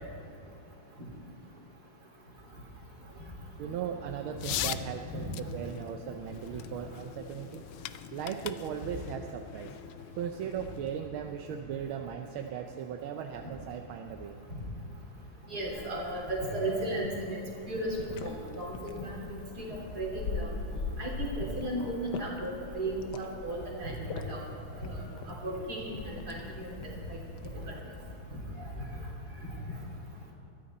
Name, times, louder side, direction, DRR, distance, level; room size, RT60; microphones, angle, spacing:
voice 1, 3.6-7.7 8.1-9.8 10.2-14.4, right 8 dB, 80° right, 4 dB, 1.6 m, -38 dB
sound 1, 4.4-11.0, left 12 dB, 80° left, 1.3 m, -41 dB
voice 2, 15.5-17.4 17.7-18.0 18.2-19.1 19.6-20.5 21.0-24.0 24.3-24.4 24.8-25.0 25.4-26.7 27.1-27.5 28.3-28.4, right 1 dB, 50° right, -4 dB, 4.1 m, -35 dB
sound 2, 15.7-27.8, left 5 dB, 60° left, 1.5 m, -42 dB
21.5 x 14.5 x 4.2 m, 2.8 s
omnidirectional pair, 2.3 m